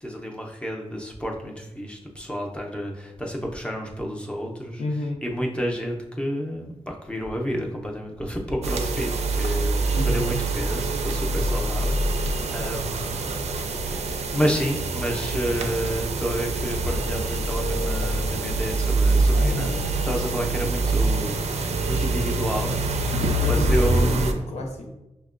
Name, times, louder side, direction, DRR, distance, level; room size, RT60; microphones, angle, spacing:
voice 1, 0.0-4.8 5.2-13.4 13.9-22.8 23.4-24.5, equal, 10° left, -1 dB, 0.5 m, -30 dB
voice 2, 4.8-5.2 9.9-10.3 19.4-19.7 23.4-24.9, left 2 dB, 65° left, 0 dB, 0.8 m, -31 dB
sound 1, 8.6-24.3, right 2 dB, 65° right, 0.4 m, -25 dB
6.3 x 2.1 x 2.4 m, 0.93 s
wide cardioid pair, 140°, 12 cm